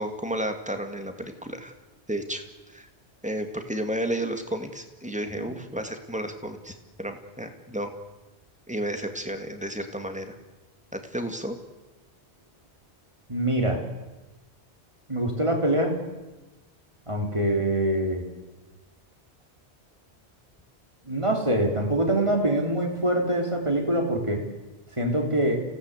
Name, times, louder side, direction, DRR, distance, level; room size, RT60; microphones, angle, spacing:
voice 1, 0.0-1.7 2.1-2.4 2.7-2.9 3.2-7.9 8.7-10.4 10.9-11.6, right 1 dB, 5° right, 6 dB, 2.2 m, -32 dB
voice 2, 13.3-13.8 15.1-16.0 17.1-18.2 21.0-24.4 25.0-25.6, right 1 dB, 25° right, 1 dB, 3.7 m, -24 dB
27.5 x 17.5 x 8.3 m, 1.2 s
omnidirectional pair, 1.1 m